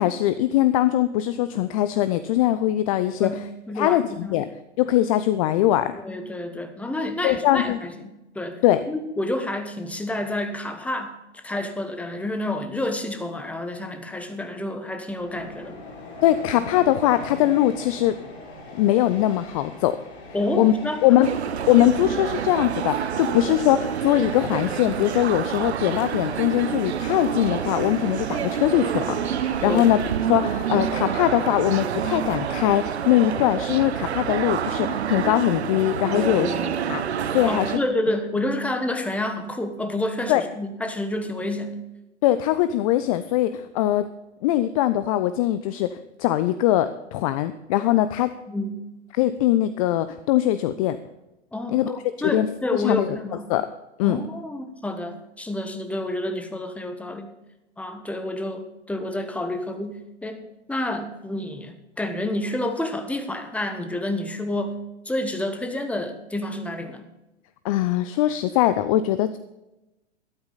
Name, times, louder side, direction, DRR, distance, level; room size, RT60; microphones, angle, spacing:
voice 1, 0.0-3.3 3.8-4.5 4.8-5.9 7.2-7.8 8.6-8.8 16.2-18.2 18.7-20.0 20.6-20.7 21.0-21.3 21.7-30.0 30.3-36.5 36.9-37.8 40.3-40.4 42.2-44.1 44.4-48.3 49.1-51.0 51.7-52.0 52.2-52.5 52.7-53.2 53.5-53.7 54.0-54.2 67.6-69.4, left 13 dB, 30° left, 12 dB, 0.5 m, -21 dB
voice 2, 3.1-4.3 5.9-8.1 8.3-8.6 8.9-15.8 20.3-21.0 29.6-29.9 36.1-36.9 37.4-41.8 48.5-48.7 51.5-53.5 54.0-57.3 57.8-64.8 65.0-67.0, left 1 dB, 5° left, 6 dB, 1.1 m, -29 dB
Train, 15.0-33.9, left 2 dB, 60° left, 4.3 m, -43 dB
sound 1, 21.2-37.8, right 8 dB, 65° right, 0.9 m, -28 dB
12.5 x 12.5 x 4.1 m, 0.97 s
figure-of-eight pair, 105°, 35 cm